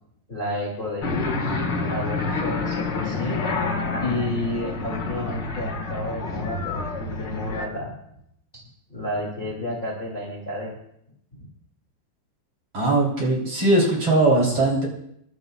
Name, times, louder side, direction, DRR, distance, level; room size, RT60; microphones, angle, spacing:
voice 1, 0.3-3.5 4.0-7.9 8.5-10.7, left 1 dB, 15° left, -2 dB, 2.1 m, -31 dB
sound 1, 1.0-7.7, left 3 dB, 60° left, 1.1 m, -28 dB
voice 2, 12.7-14.9, right 2 dB, 35° right, -3 dB, 4.1 m, -20 dB
27.5 x 12.0 x 2.4 m, 0.74 s
omnidirectional pair, 4.7 m